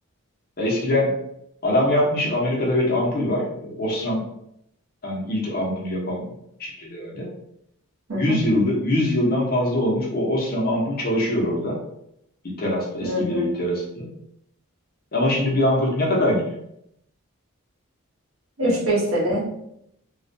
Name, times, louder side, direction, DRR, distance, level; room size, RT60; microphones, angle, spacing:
voice 1, 0.6-1.1 1.6-4.2 5.0-6.2 6.6-7.3 8.2-11.8 12.4-14.1 15.1-16.6 18.6-18.8, left 1 dB, 45° left, -3 dB, 0.7 m, -23 dB
voice 2, 8.1-8.4 13.0-13.5 18.6-19.5, right 1 dB, 80° right, -4 dB, 0.8 m, -23 dB
2.3 x 2.1 x 2.6 m, 0.77 s
head